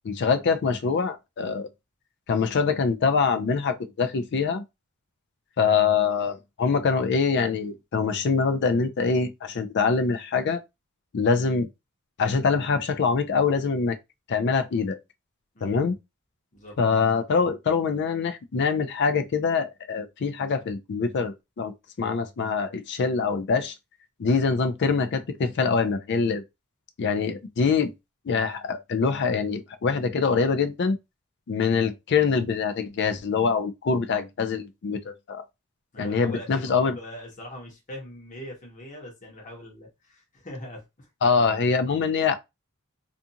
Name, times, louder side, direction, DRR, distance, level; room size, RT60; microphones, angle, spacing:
voice 1, 0.0-1.7 2.3-4.6 5.6-10.6 11.1-11.7 12.2-14.0 14.3-15.0 15.6-16.0 16.8-21.7 22.0-23.7 24.2-26.4 27.0-27.9 28.3-31.0 31.5-35.4 36.0-37.0 41.2-42.4, left 5 dB, 55° left, 0.4 m, -24 dB
voice 2, 35.9-41.6 41.9-42.0, equal, 35° left, 1.0 m, -42 dB
2.6 x 2.4 x 2.7 m
head